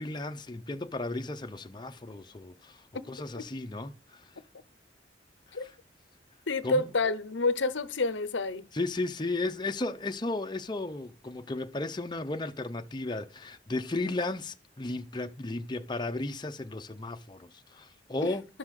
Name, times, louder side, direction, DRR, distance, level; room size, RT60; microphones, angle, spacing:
voice 1, 0.0-2.8 3.1-4.2 5.6-5.8 6.6-6.9 8.7-18.5, left 2 dB, 25° left, 0.7 m, -34 dB
voice 2, 6.5-8.6, left 3 dB, 85° left, 0.9 m, -28 dB
12.5 x 6.0 x 6.5 m
head